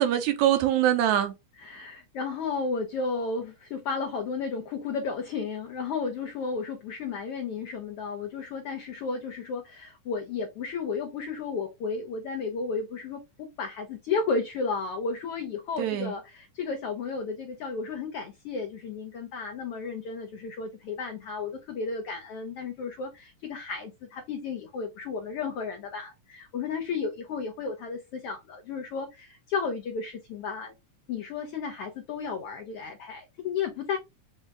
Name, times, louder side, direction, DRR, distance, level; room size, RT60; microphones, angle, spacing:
voice 1, 0.0-1.3 15.8-16.1, right 11 dB, 75° right, 2.0 m, -23 dB
voice 2, 1.6-30.7 31.1-34.0, left 5 dB, 85° left, 1.3 m, -33 dB
6.2 x 2.1 x 3.4 m
omnidirectional pair, 3.5 m